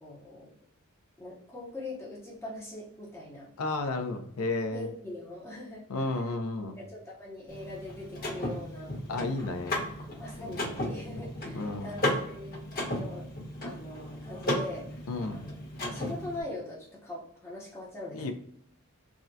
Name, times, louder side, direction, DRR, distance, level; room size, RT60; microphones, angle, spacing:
voice 1, 0.0-0.5 1.2-3.5 4.7-6.3 6.8-9.0 10.2-12.6 13.0-13.3 13.6-15.5 15.8-18.3, left 2 dB, 10° left, -5 dB, 0.6 m, -42 dB
voice 2, 3.6-4.9 5.9-6.8 9.1-9.9 10.4-10.9 11.5-11.9 15.1-15.4 18.1-18.3, left 2 dB, 85° left, 6 dB, 0.5 m, -33 dB
Car / Mechanisms, 7.5-16.4, left 1 dB, 45° left, 1.0 m, -35 dB
3.6 x 2.1 x 2.6 m, 0.71 s
head